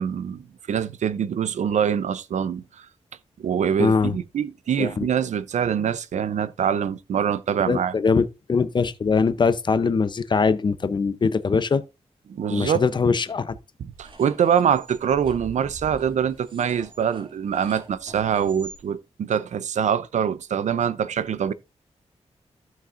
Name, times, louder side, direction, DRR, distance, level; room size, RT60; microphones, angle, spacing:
voice 1, 0.0-2.9 3.4-7.9 12.3-12.8 13.8-21.5, right 8 dB, 85° right, 0.5 m, -24 dB
voice 2, 3.8-4.1 4.8-5.1 7.7-11.8 12.5-13.6, left 5 dB, 40° left, 0.6 m, -22 dB
sound 1, 13.9-18.8, right 3 dB, 45° right, 2.4 m, -44 dB
15.0 x 5.8 x 2.5 m
wide cardioid pair, 130°, 12 cm